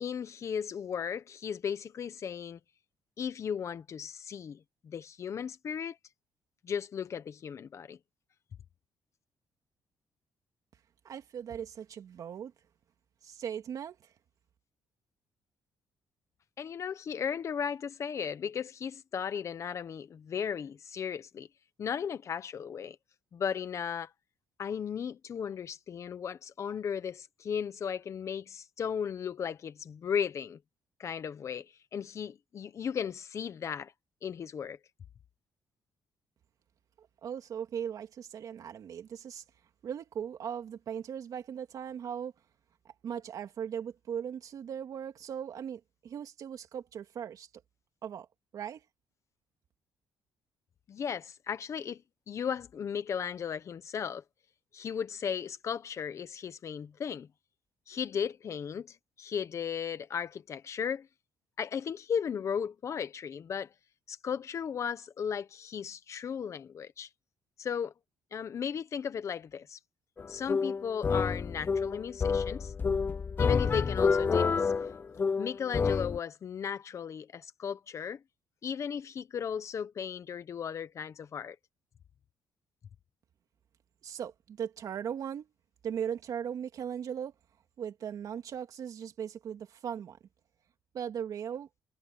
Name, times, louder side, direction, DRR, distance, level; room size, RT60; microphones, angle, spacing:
voice 1, 0.0-2.6 3.2-6.0 6.6-8.0 16.6-21.5 21.8-23.0 23.3-24.1 24.6-30.6 31.0-33.9 34.2-34.8 50.9-52.0 52.3-54.2 54.7-57.3 57.9-61.1 61.6-63.7 64.1-67.1 67.6-67.9 68.3-69.8 70.3-72.7 73.4-75.0 75.4-78.2 78.6-81.6, left 7 dB, 45° left, 1.2 m, -36 dB
voice 2, 11.0-12.5 13.2-14.1 37.0-39.4 39.8-42.3 42.8-47.5 48.0-48.3 48.5-48.8 84.0-85.5 85.8-87.3 87.8-90.2 90.9-91.7, right 8 dB, 55° right, 3.0 m, -38 dB
sound 1, 70.2-76.2, left 5 dB, 25° left, 0.6 m, -28 dB
cardioid pair, 150°, 7 cm